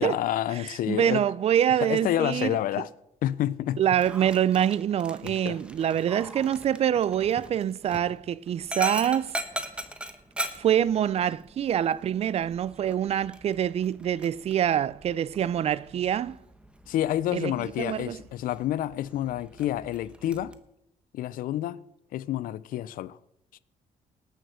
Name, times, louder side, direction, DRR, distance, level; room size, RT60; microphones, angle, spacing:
voice 1, 0.0-1.2 1.8-2.9 3.2-3.8 5.2-5.6 16.9-20.5 21.1-21.8 22.1-23.2 23.5-23.6, left 12 dB, 70° left, 0.5 m, -29 dB
voice 2, 0.7-2.6 3.8-9.3 10.6-16.4 17.3-18.2, right 10 dB, 45° right, 0.4 m, -25 dB
Dog, 3.9-20.5, right 1 dB, 5° right, 1.1 m, -41 dB
18.5 x 6.5 x 6.3 m
cardioid pair, 105°, 15 cm